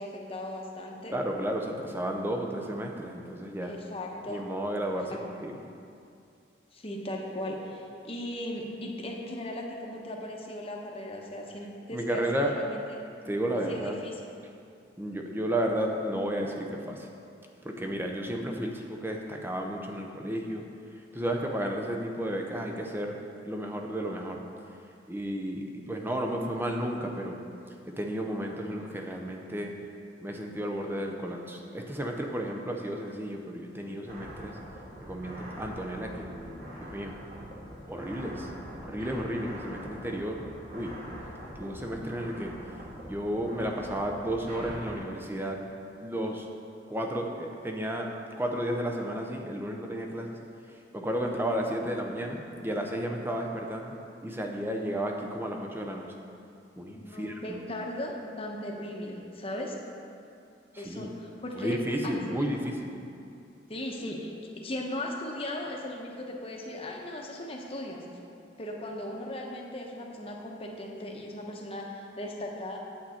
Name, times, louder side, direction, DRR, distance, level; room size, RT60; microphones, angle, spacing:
voice 1, 0.0-1.2 3.6-4.4 5.1-5.2 6.7-12.8 13.7-14.1 56.9-59.8 60.8-61.8 62.0-62.4 63.7-68.1 68.6-72.8, left 1 dB, 30° left, 0 dB, 1.0 m, -37 dB
voice 2, 1.1-3.7 4.3-5.5 11.9-12.6 13.2-14.0 15.0-17.1 17.6-20.6 21.1-23.2 23.4-24.4 25.1-27.4 27.9-29.7 30.2-34.6 35.0-36.3 36.8-37.1 37.9-38.5 38.8-40.9 41.6-42.5 43.0-45.6 46.0-46.5 46.9-50.4 50.9-53.9 54.2-56.1 56.8-57.6 60.7-61.1 61.6-63.0, right 1 dB, 10° right, 2 dB, 0.7 m, -32 dB
sound 1, 34.1-45.0, equal, 50° right, 1.7 m, -43 dB
8.7 x 7.8 x 4.3 m, 2.5 s
head